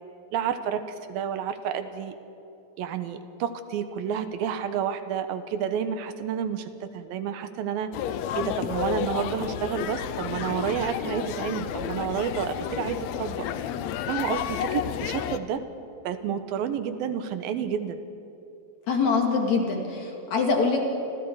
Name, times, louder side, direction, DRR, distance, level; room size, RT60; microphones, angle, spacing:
voice 1, 0.3-2.2 2.8-7.9 8.4-13.5 14.1-15.6 16.0-18.0, right 8 dB, 80° right, 10 dB, 2.8 m, -30 dB
sound 1, 7.9-15.4, left 9 dB, 85° left, 1.5 m, -31 dB
voice 2, 18.9-20.8, left 4 dB, 55° left, 2 dB, 3.7 m, -24 dB
29.5 x 26.5 x 4.8 m, 2.9 s
omnidirectional pair, 4.2 m